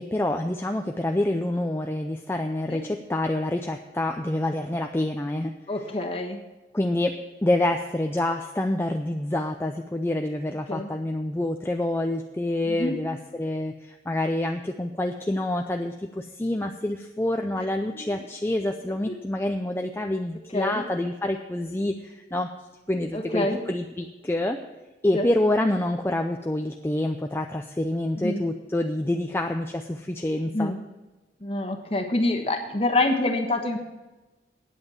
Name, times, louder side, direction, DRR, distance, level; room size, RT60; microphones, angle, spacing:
voice 1, 0.0-5.5 6.7-22.5 22.9-24.6 25.0-30.7, left 1 dB, 15° left, 4 dB, 0.4 m, -27 dB
voice 2, 5.7-6.4 10.7-10.9 12.6-13.0 17.9-18.0 19.1-19.2 20.5-20.8 23.1-23.6 25.1-25.3 28.2-28.4 30.5-30.8 31.4-33.8, left 2 dB, 35° left, 3 dB, 1.2 m, -26 dB
9.1 x 8.0 x 7.1 m, 1.1 s
head